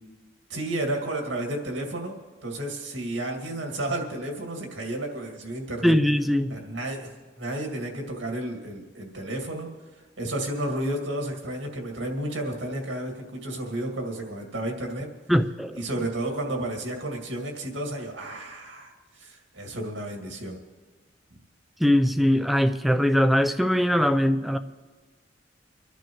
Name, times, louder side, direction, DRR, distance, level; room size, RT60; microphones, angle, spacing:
voice 1, 0.5-2.2 2.4-5.9 6.5-9.7 10.2-15.1 15.8-20.6, right 1 dB, 90° right, 2.2 m, -32 dB
voice 2, 5.8-6.5 15.3-15.8 21.8-24.6, equal, ahead, 0.5 m, -21 dB
25.5 x 11.5 x 3.1 m
head